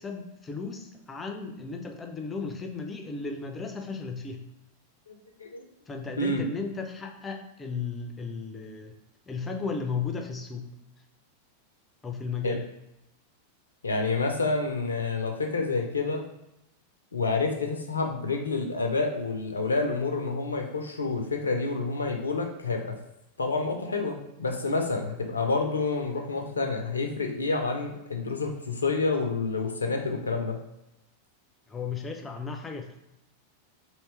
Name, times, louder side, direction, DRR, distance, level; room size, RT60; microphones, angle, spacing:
voice 1, 0.0-4.4 5.9-8.9 9.3-10.7 12.0-12.6 31.7-33.0, left 4 dB, 15° left, 3 dB, 0.5 m, -35 dB
voice 2, 5.1-5.7 6.2-6.4 12.4-12.6 13.8-16.2 17.1-22.9 23.4-30.6, left 3 dB, 75° left, 3 dB, 0.5 m, -28 dB
3.1 x 2.8 x 3.3 m, 0.87 s
figure-of-eight pair, 90°, 0 cm